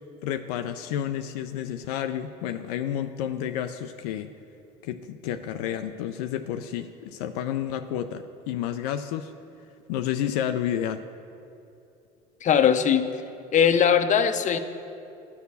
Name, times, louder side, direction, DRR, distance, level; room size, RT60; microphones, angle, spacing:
voice 1, 0.2-4.3 4.8-9.3 9.9-11.0, left 10 dB, 80° left, 8 dB, 0.4 m, -30 dB
voice 2, 12.4-13.0 13.5-14.6, left 8 dB, 40° left, 9 dB, 0.7 m, -20 dB
10.5 x 4.7 x 6.9 m, 2.7 s
hypercardioid pair, 75°, 20 cm